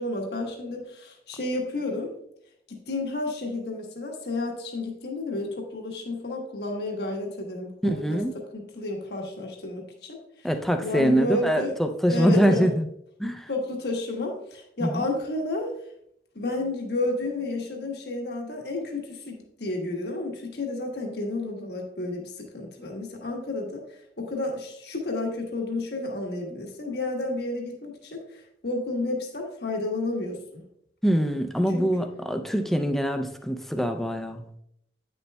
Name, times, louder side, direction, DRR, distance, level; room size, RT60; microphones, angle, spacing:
voice 1, 0.0-2.1 2.7-10.5 10.8-11.8 12.1-12.7 13.5-15.7 16.3-30.6 31.7-31.9, left 2 dB, 70° left, 1 dB, 1.2 m, -31 dB
voice 2, 7.8-8.3 10.4-12.8 13.2-13.5 14.8-15.0 31.0-34.5, equal, ahead, 6 dB, 0.4 m, -24 dB
9.1 x 6.8 x 2.2 m, 0.74 s
head